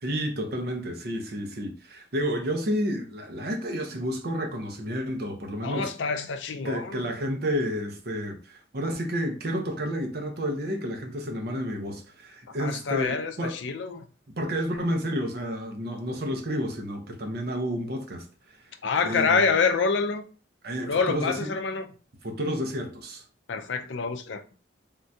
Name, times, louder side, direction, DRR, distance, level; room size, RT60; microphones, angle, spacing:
voice 1, 0.0-5.9 6.6-13.6 14.4-18.3 19.0-19.4 20.6-21.5 22.2-23.2, equal, 55° right, 0.6 m, -30 dB
voice 2, 5.6-7.1 12.6-14.0 18.8-20.2 20.9-21.9 23.5-24.4, left 5 dB, 70° left, 0.4 m, -27 dB
3.6 x 2.2 x 2.7 m
head